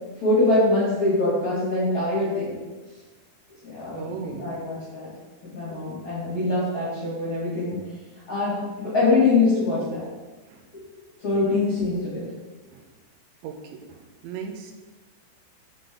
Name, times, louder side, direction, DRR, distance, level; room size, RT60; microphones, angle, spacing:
voice 1, 0.2-2.6 3.6-5.1 5.5-7.8 8.3-10.0 10.7-10.8 11.2-12.2, left 2 dB, 40° left, -9 dB, 1.9 m, -23 dB
voice 2, 4.0-4.5 10.5-10.6 12.7-12.8 13.4-14.7, right 6 dB, 90° right, 3 dB, 3.0 m, -37 dB
6.7 x 6.0 x 3.8 m, 1.2 s
omnidirectional pair, 5.2 m